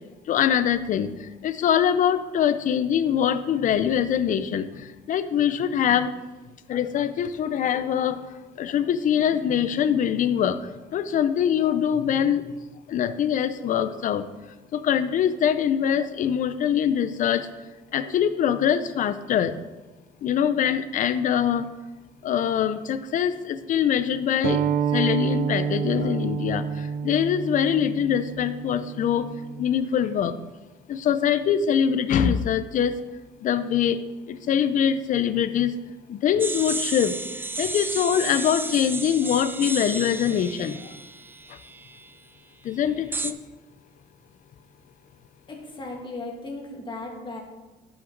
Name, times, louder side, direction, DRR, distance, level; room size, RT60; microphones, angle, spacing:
voice 1, 0.3-6.1 6.7-12.5 12.9-14.3 14.7-17.5 17.9-19.6 20.2-21.7 22.2-24.6 24.9-29.3 29.6-30.4 30.9-33.0 33.4-34.0 34.3-35.7 36.1-40.9 41.5-41.6 42.6-43.4, left 9 dB, 50° left, 12 dB, 0.6 m, -23 dB
sound 1, 24.4-29.6, right 7 dB, 60° right, 0.6 m, -28 dB
sound 2, 36.4-42.1 43.1-43.3, right 3 dB, 10° right, 0.4 m, -32 dB
voice 2, 45.5-47.4, left 2 dB, 30° left, 1 dB, 2.0 m, -36 dB
11.0 x 5.9 x 3.9 m, 1.2 s
cardioid pair, 110°, 17 cm